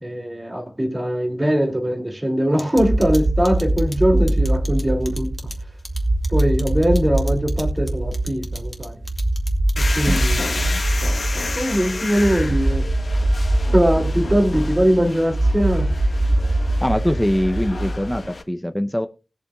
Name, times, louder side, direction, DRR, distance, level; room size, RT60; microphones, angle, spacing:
voice 1, 0.0-5.3 6.3-9.0 9.8-10.8 11.6-12.8 13.7-15.9, equal, 20° right, 2.6 m, -21 dB
sound 1, 2.6-10.5, left 2 dB, 25° left, 2.3 m, -38 dB
sound 2, 2.8-18.3, right 1 dB, 80° right, 1.3 m, -22 dB
sound 3, 9.8-18.4, left 3 dB, 60° left, 1.6 m, -31 dB
voice 2, 16.8-19.1, equal, 5° left, 0.7 m, -22 dB
20.5 x 6.9 x 2.3 m
wide cardioid pair, 85°, 0 cm